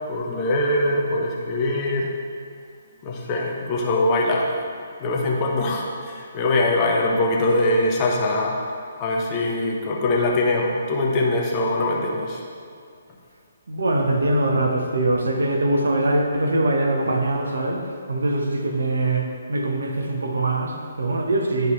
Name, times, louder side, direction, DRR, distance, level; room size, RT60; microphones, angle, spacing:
voice 1, 0.1-2.1 3.0-4.6 5.0-8.6 9.0-12.4, left 2 dB, 25° left, -2 dB, 1.0 m, -22 dB
voice 2, 13.7-21.7, right 2 dB, 65° right, 2 dB, 0.9 m, -22 dB
10.5 x 4.5 x 3.2 m, 2.3 s
figure-of-eight pair, 135°, 0 cm